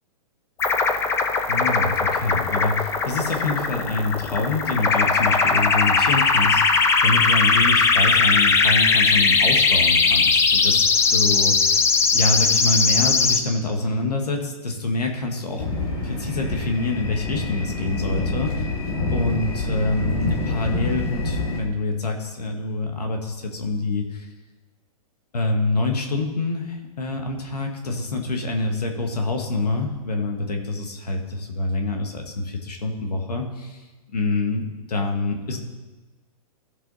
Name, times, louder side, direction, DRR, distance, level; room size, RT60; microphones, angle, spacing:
sound 1, 0.6-13.4, left 4 dB, 15° left, 0.6 m, -19 dB
voice 1, 1.5-18.7 19.1-24.3 25.3-33.8 34.1-35.6, left 2 dB, 85° left, 3 dB, 1.9 m, -26 dB
sound 2, 15.6-21.6, left 3 dB, 70° left, 3.1 m, -27 dB
15.0 x 5.7 x 4.2 m, 1.2 s
hypercardioid pair, 135°, 20 cm